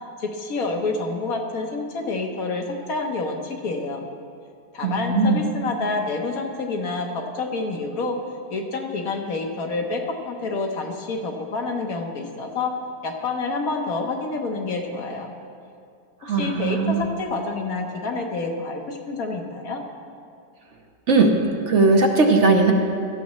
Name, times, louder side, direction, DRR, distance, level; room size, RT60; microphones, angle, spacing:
voice 1, 0.2-4.0 4.7-8.2 8.5-12.7 13.0-15.3 16.3-19.8, left 3 dB, 60° left, 2 dB, 1.4 m, -28 dB
voice 2, 4.8-5.4 16.2-17.1 21.1-21.4 21.7-22.7, right 3 dB, 50° right, 3 dB, 1.0 m, -18 dB
17.0 x 12.5 x 3.1 m, 2.4 s
omnidirectional pair, 1.9 m